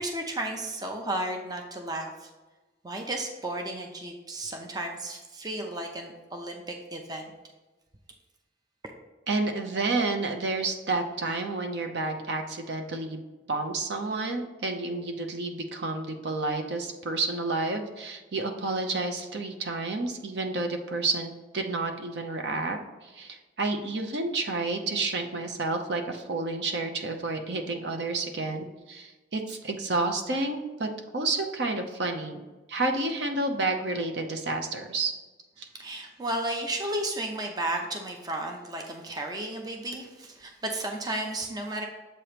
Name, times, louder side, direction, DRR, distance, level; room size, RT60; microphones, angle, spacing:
voice 1, 0.0-2.3 2.8-7.3 35.8-41.8, right 1 dB, 20° right, 3 dB, 0.5 m, -33 dB
voice 2, 9.3-13.2 13.5-32.4 32.7-35.1 35.6-35.7, right 3 dB, 65° right, 4 dB, 0.7 m, -30 dB
7.5 x 3.0 x 5.0 m, 1.2 s
head